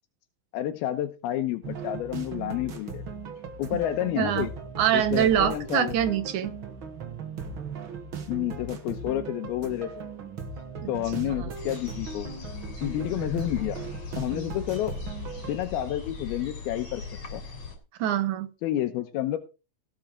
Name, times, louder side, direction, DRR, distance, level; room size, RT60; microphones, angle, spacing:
voice 1, 0.5-3.0 3.6-4.5 4.9-5.9 8.3-9.9 10.9-12.3 12.8-13.8 14.2-14.9 15.5-17.0 17.3-17.4 18.6-19.4, left 13 dB, 85° left, 6 dB, 2.8 m, -29 dB
sound 1, 1.6-15.6, right 5 dB, 45° right, 1.8 m, -38 dB
voice 2, 4.2-4.5 4.8-6.5 10.8-10.9 11.3-11.4 18.0-18.5, right 10 dB, 70° right, 9 dB, 2.0 m, -24 dB
sound 2, 11.5-17.8, left 4 dB, 45° left, 4.0 m, -39 dB
17.5 x 6.9 x 4.9 m, 0.31 s
omnidirectional pair, 4.3 m